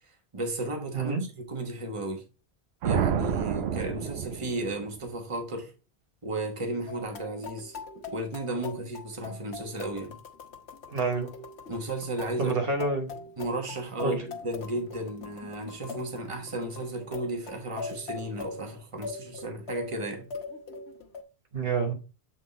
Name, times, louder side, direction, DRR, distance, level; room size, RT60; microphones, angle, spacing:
voice 1, 0.3-1.2 1.5-2.2 2.8-5.7 6.2-7.8 8.1-10.2 11.7-12.6 13.4-20.3, right 1 dB, 30° right, 1.3 m, -34 dB
sound 1, 2.8-5.1, right 8 dB, 75° right, 0.9 m, -29 dB
sound 2, 6.9-21.2, left 4 dB, 80° left, 1.3 m, -42 dB
voice 2, 10.9-11.3 12.4-13.1 14.0-14.2 21.5-21.9, right 3 dB, 60° right, 1.4 m, -27 dB
7.9 x 3.8 x 4.1 m
omnidirectional pair, 1.1 m